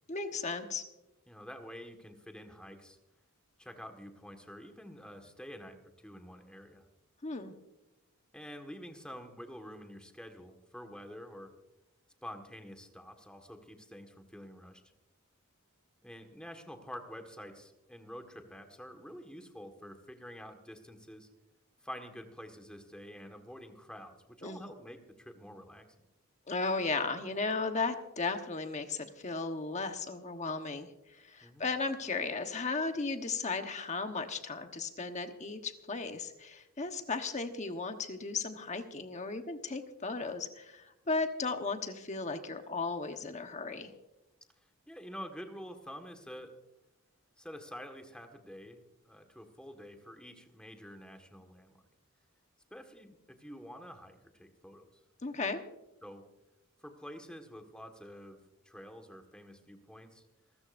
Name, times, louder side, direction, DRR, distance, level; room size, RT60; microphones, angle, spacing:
voice 1, 0.1-0.8 7.2-7.5 24.4-24.6 26.5-43.9 55.2-55.6, left 4 dB, 35° left, 6 dB, 1.2 m, -35 dB
voice 2, 1.3-3.0 3.6-5.8 6.0-6.8 8.3-11.5 12.2-14.8 16.0-21.3 21.8-25.8 31.4-31.7 44.9-46.6 47.4-51.8 52.7-54.9 56.0-56.2 56.8-58.4 58.6-60.2, equal, 5° left, 5 dB, 1.6 m, -48 dB
27.0 x 13.5 x 2.6 m, 0.94 s
head